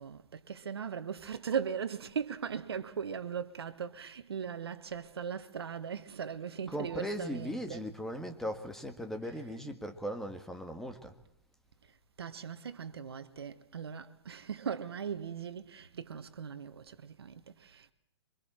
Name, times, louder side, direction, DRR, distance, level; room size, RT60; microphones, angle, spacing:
voice 1, 0.0-7.8 12.2-17.9, right 7 dB, 70° right, 1.5 m, -39 dB
voice 2, 6.7-11.1 13.4-13.5, equal, 5° left, 1.9 m, -38 dB
27.0 x 24.0 x 4.5 m
figure-of-eight pair, 120°, 14 cm